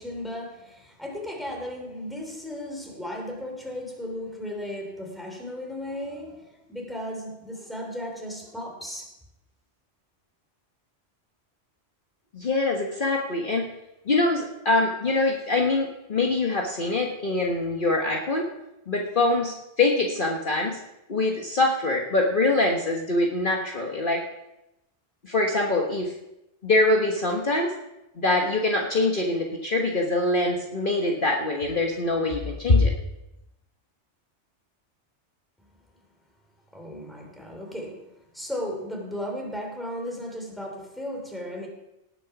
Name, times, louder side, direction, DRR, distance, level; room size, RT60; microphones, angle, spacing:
voice 1, 0.0-9.1 36.7-41.7, equal, ahead, 3.2 m, -35 dB
voice 2, 12.3-13.7 14.1-18.4 18.9-20.8 21.1-24.2 25.2-26.1 26.6-27.7 28.2-32.9, left 2 dB, 45° left, 1.4 m, -24 dB
18.5 x 7.0 x 5.9 m
omnidirectional pair, 1.2 m